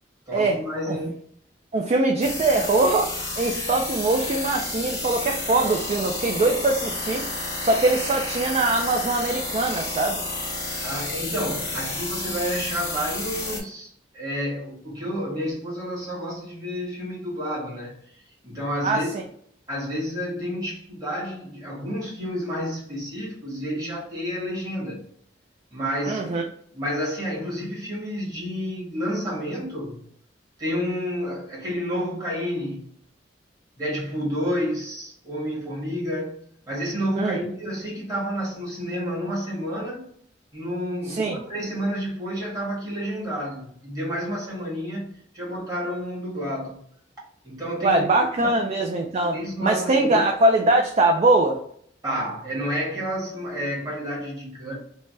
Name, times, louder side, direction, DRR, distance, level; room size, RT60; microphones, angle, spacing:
voice 1, 0.3-1.1 10.8-19.2 19.7-25.0 25.7-26.4 26.7-30.1 30.6-32.9 33.8-40.1 40.5-46.8 47.4-48.1 49.2-50.2 52.0-54.7, equal, 20° right, 1.4 m, -30 dB
voice 2, 1.7-7.3 7.6-10.2 18.8-19.0 26.1-26.4 37.2-37.4 41.1-41.4 47.8-49.3 49.6-51.6, right 2 dB, 35° right, 0.3 m, -22 dB
sound 1, 2.2-13.6, left 2 dB, 20° left, 0.7 m, -31 dB
3.2 x 2.2 x 2.6 m
head